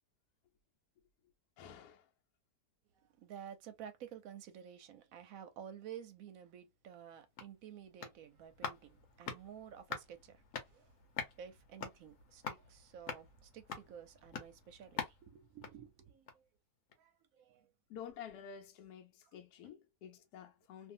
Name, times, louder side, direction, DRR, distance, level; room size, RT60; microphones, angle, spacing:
voice 1, 1.6-2.1 17.9-20.9, left 8 dB, 80° left, 1.1 m, -50 dB
voice 2, 3.0-10.4 10.7-10.9 11.4-16.5 17.0-17.7, right 9 dB, 70° right, 0.9 m, -52 dB
sound 1, 7.0-16.6 16.9-17.0, left 6 dB, 60° left, 1.0 m, -47 dB
2.6 x 2.4 x 2.6 m
omnidirectional pair, 1.7 m